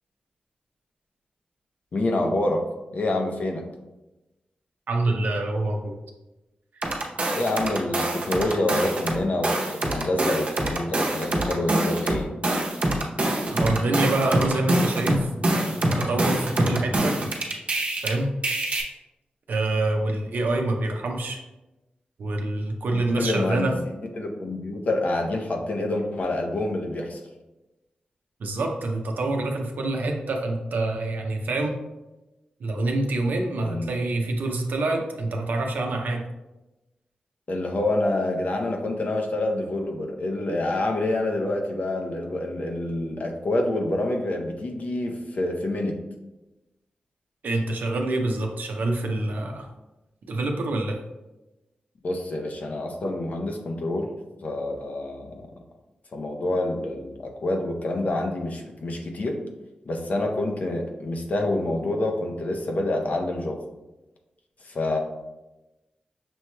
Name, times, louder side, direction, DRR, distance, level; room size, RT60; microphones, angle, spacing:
voice 1, 1.9-2.6 2.9-3.6 7.3-12.3 22.9-27.2 33.6-33.9 37.5-46.0 52.0-54.1 54.4-55.5 56.1-59.4 59.9-63.6 64.6-65.0, left 2 dB, 60° left, 2 dB, 0.7 m, -27 dB
voice 2, 4.9-5.9 13.5-15.3 16.0-17.2 18.0-18.3 19.5-21.4 22.2-23.7 28.4-31.8 32.6-36.2 47.4-49.7 50.3-51.0, right 2 dB, 85° right, 2 dB, 0.6 m, -26 dB
sound 1, 6.8-9.2 9.4-18.1 18.4-18.8, right 1 dB, 45° right, 0.8 m, -25 dB
6.1 x 3.0 x 2.2 m, 1.0 s
cardioid pair, 75°, 3 cm